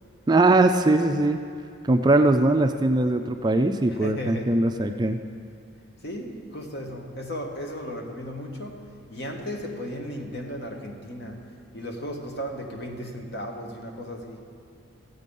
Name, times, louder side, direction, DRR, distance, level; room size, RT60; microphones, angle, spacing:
voice 1, 0.3-1.4 1.8-5.2, right 2 dB, 20° right, 6 dB, 0.3 m, -21 dB
voice 2, 3.8-4.7 6.0-14.4, equal, 50° left, 2 dB, 1.3 m, -35 dB
15.5 x 8.2 x 5.4 m, 2.4 s
head